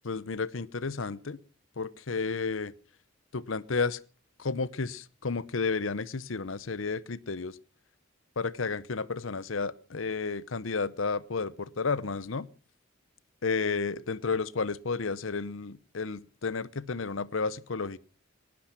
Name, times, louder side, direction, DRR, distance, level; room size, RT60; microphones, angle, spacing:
voice 1, 0.0-1.4 1.8-2.7 3.3-4.0 4.4-7.5 8.4-12.5 13.4-18.0, left 4 dB, 75° left, 0.8 m, -32 dB
19.0 x 12.0 x 5.9 m
head